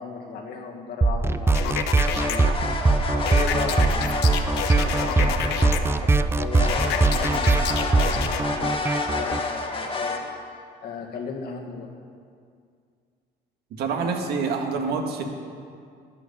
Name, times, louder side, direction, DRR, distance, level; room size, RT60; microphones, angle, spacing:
voice 1, 0.0-2.5 3.1-10.1 10.8-11.9, left 5 dB, 65° left, 1 dB, 1.9 m, -36 dB
sound 1, 1.0-9.4, right 3 dB, 15° right, 0.4 m, -22 dB
sound 2, 1.5-2.4 3.3-5.8 6.7-8.4, left 10 dB, 85° left, 0.9 m, -30 dB
sound 3, 2.0-6.1 6.5-10.2, left 3 dB, 30° left, 1.5 m, -30 dB
voice 2, 13.7-15.2, right 5 dB, 70° right, 3 dB, 1.7 m, -26 dB
11.0 x 10.0 x 6.9 m, 2.2 s
cardioid pair, 110°, 17 cm